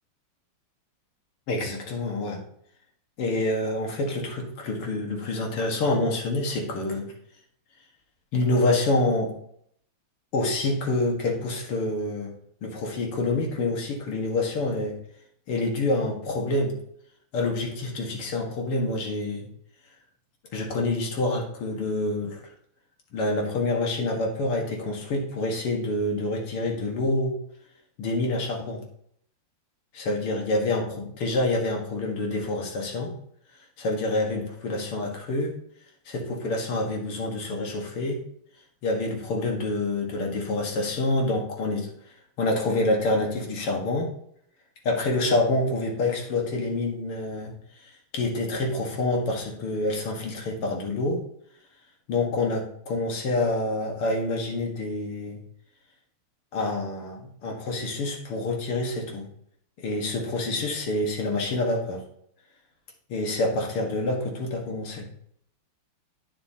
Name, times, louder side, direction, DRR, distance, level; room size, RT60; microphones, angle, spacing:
voice 1, 1.5-2.4 3.2-7.1 8.3-9.3 10.3-12.3 12.6-15.0 15.5-16.8 17.3-19.5 20.5-22.4 23.1-27.4 28.0-28.8 29.9-33.1 33.8-35.5 36.1-38.2 38.8-41.9 42.4-44.1 44.8-47.5 47.8-51.2 52.1-55.4 56.5-59.3 59.8-62.0 63.1-65.1, left 2 dB, 85° left, 1 dB, 2.5 m, -27 dB
10.5 x 9.4 x 2.8 m, 0.68 s
omnidirectional pair, 2.4 m